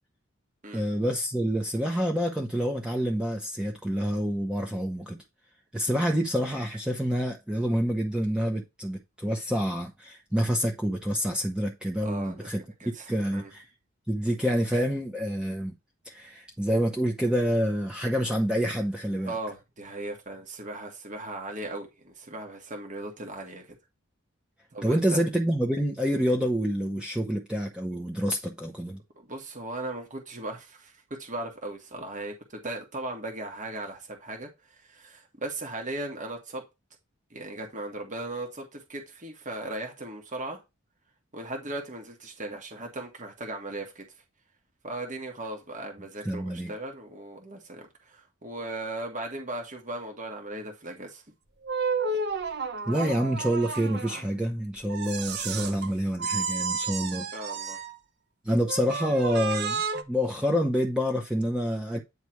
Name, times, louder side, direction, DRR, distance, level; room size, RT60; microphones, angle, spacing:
voice 1, 0.7-5.2 5.7-13.6 14.1-15.7 16.0-19.4 24.8-29.0 46.2-46.7 52.9-57.3 58.4-62.0, equal, 5° right, 0.8 m, -27 dB
voice 2, 12.0-12.5 12.8-13.5 19.2-23.8 24.7-25.2 29.2-36.6 37.3-40.6 41.3-44.1 44.8-51.2 55.6-55.8 57.3-57.8, right 2 dB, 40° right, 1.7 m, -37 dB
sound 1, 51.6-54.2 54.9-55.9 56.2-58.0 58.7-60.0, right 4 dB, 55° right, 0.9 m, -31 dB
9.5 x 3.3 x 4.5 m
head